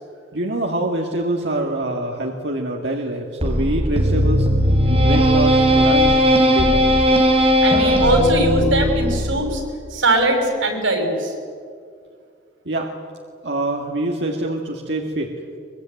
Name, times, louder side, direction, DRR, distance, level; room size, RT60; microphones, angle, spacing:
voice 1, 0.3-4.5 4.8-6.9 12.7-12.9 13.4-15.3, right 1 dB, 60° right, 0 dB, 2.2 m, -25 dB
sound 1, 3.4-9.7, equal, 30° right, 3.4 m, -17 dB
voice 2, 7.6-9.6 9.9-11.3, right 1 dB, 90° right, 4 dB, 6.0 m, -20 dB
23.0 x 22.5 x 9.2 m, 2.2 s
head